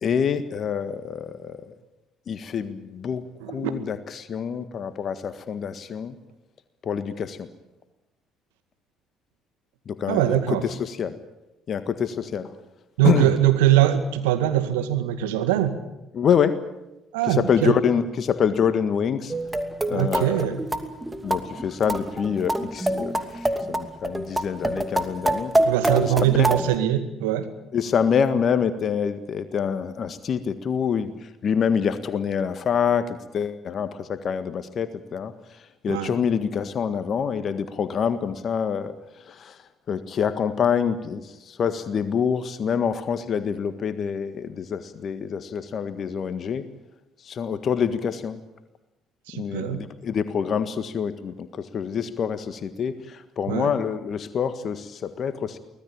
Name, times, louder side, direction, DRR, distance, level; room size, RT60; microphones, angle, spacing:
voice 1, 0.0-1.7 2.3-6.2 6.8-7.5 9.9-11.2 11.7-12.5 13.0-13.3 16.1-16.6 17.3-19.3 19.9-20.4 21.2-25.5 26.1-26.5 27.7-38.9 39.3-39.6 39.9-46.7 47.2-48.4 49.3-55.6, left 7 dB, 50° left, 11 dB, 1.7 m, -26 dB
voice 2, 3.4-3.7 10.1-10.6 13.0-15.8 17.1-17.8 19.9-20.6 25.6-27.5 35.9-36.1 49.3-49.8 53.5-53.7, right 13 dB, 80° right, 9 dB, 2.0 m, -22 dB
sound 1, 19.3-26.7, right 1 dB, 10° right, 2.6 m, -26 dB
24.5 x 19.0 x 8.7 m, 0.96 s
hypercardioid pair, 50°, 0 cm